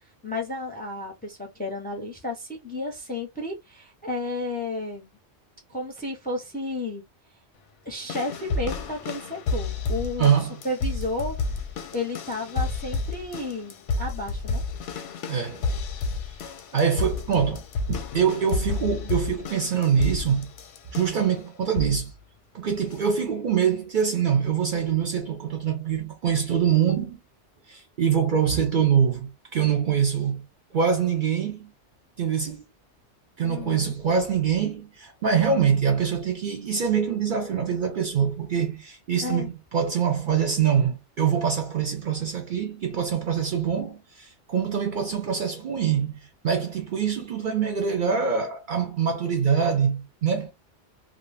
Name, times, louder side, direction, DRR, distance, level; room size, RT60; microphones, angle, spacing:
voice 1, 0.2-5.1 5.7-7.0 7.8-11.4 11.9-14.6 33.4-33.9 39.2-39.5, left 2 dB, 10° left, 0.5 m, -32 dB
sound 1, 8.1-21.3 21.7-22.1 22.9-23.0, left 3 dB, 90° left, 0.9 m, -31 dB
voice 2, 10.2-10.6 15.3-15.7 16.7-20.5 20.9-22.1 22.5-27.2 27.7-30.5 30.7-31.7 32.2-32.6 33.4-50.5, right 7 dB, 55° right, 0.6 m, -24 dB
2.3 x 2.1 x 3.2 m
omnidirectional pair, 1.2 m